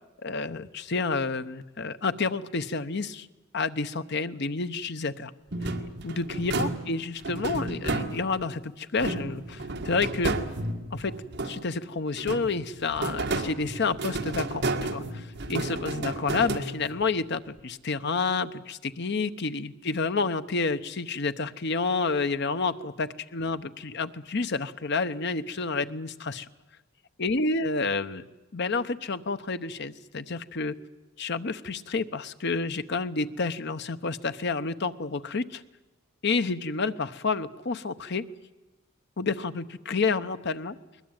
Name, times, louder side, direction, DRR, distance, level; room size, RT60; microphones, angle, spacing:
voice 1, 0.2-3.3 3.5-5.3 6.0-10.4 10.9-11.2 11.4-26.5 27.2-28.2 28.5-30.8 31.2-35.6 36.2-38.2 39.2-40.8, left 4 dB, 60° left, 11 dB, 0.9 m, -29 dB
sound 1, 5.5-8.5 9.0-11.8 12.2-17.1, right 2 dB, 60° right, 1.7 m, -32 dB
21.0 x 20.5 x 8.9 m, 1.1 s
head